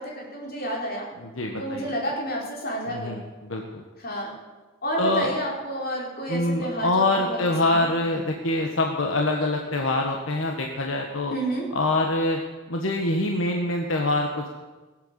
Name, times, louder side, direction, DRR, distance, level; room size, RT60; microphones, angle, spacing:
voice 1, 0.0-1.1 1.6-3.2 4.0-4.4 4.8-7.9 11.3-11.7, right 1 dB, 50° left, -3 dB, 4.4 m, -30 dB
voice 2, 1.2-1.9 2.9-3.8 5.0-5.3 6.3-11.3 11.7-12.4 12.7-14.5, left 2 dB, 80° left, 2 dB, 1.4 m, -25 dB
18.5 x 8.2 x 8.1 m, 1.3 s
head